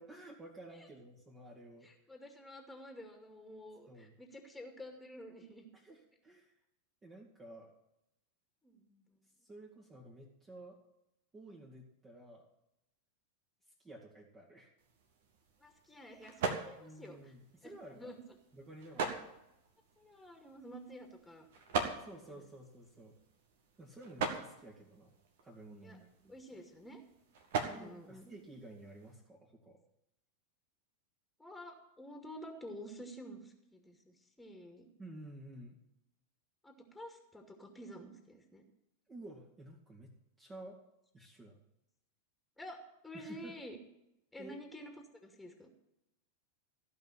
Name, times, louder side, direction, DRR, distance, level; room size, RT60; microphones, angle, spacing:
voice 1, 0.0-1.9 3.9-4.2 5.7-6.5 7.0-7.7 9.2-10.8 11.3-12.5 13.8-14.7 16.8-18.1 18.5-19.3 22.0-23.1 23.8-25.1 25.4-26.6 27.7-29.8 35.0-35.8 39.1-40.1 40.4-40.8 41.1-41.6 43.1-43.6 44.4-44.6, right 1 dB, 15° right, -4 dB, 2.2 m, -52 dB
voice 2, 1.8-5.6 8.6-9.2 15.6-17.3 17.6-18.2 20.0-21.5 22.3-22.4 25.8-26.0 26.3-27.0 27.6-28.3 31.4-34.9 36.6-38.6 42.6-42.8 43.0-43.8 44.3-45.7, equal, 5° left, 3 dB, 2.4 m, -50 dB
sound 1, 14.8-29.1, right 4 dB, 55° right, 1.9 m, -43 dB
15.5 x 5.6 x 9.8 m, 0.85 s
figure-of-eight pair, 90°, 0 cm